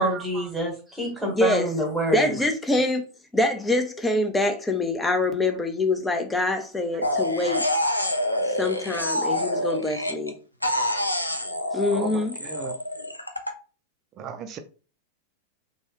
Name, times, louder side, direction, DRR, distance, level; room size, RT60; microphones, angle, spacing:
voice 1, 0.0-2.4, equal, 5° right, 1.3 m, -26 dB
voice 2, 1.3-1.7 2.1-3.0 3.3-7.6 8.5-10.3 11.7-12.4, left 2 dB, 10° left, 0.6 m, -25 dB
sound 1, 7.0-10.3 10.6-13.5, left 1 dB, 85° left, 0.4 m, -27 dB
voice 3, 11.9-12.8 14.2-14.6, right 7 dB, 35° right, 0.5 m, -37 dB
3.1 x 2.2 x 2.9 m
figure-of-eight pair, 90°, 0 cm